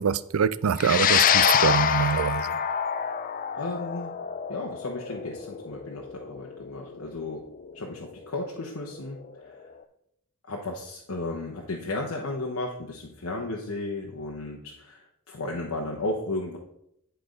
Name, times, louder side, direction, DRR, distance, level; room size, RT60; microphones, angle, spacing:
voice 1, 0.0-2.6, right 6 dB, 75° right, 0.4 m, -25 dB
sound 1, 0.8-9.3, left 8 dB, 40° left, 0.4 m, -26 dB
voice 2, 3.5-4.1 4.5-7.4 7.7-9.6 10.5-16.6, left 2 dB, 90° left, 1.0 m, -34 dB
10.5 x 4.5 x 5.2 m
head